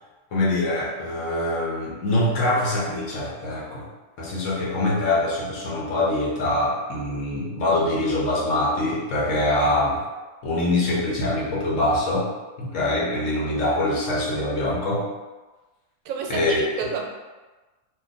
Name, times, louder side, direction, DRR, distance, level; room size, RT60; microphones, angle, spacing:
voice 1, 0.3-3.9 4.2-10.0 10.4-12.3 12.6-15.1 16.3-16.6, left 1 dB, 70° left, -5 dB, 1.2 m, -24 dB
voice 2, 16.0-17.0, right 6 dB, 80° right, 1 dB, 1.0 m, -30 dB
2.7 x 2.5 x 3.7 m, 1.2 s
omnidirectional pair, 1.4 m